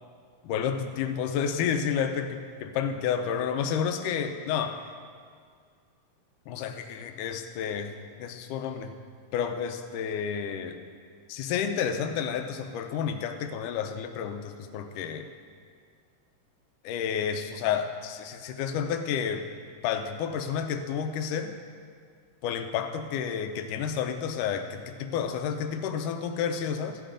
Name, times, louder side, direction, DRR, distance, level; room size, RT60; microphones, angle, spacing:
voice 1, 0.4-4.8 6.5-8.9 9.3-10.8 11.3-15.3 16.8-19.4 19.8-21.5 22.4-27.0, left 7 dB, 85° left, 6 dB, 2.2 m, -30 dB
15.5 x 10.0 x 3.8 m, 2.1 s
omnidirectional pair, 3.7 m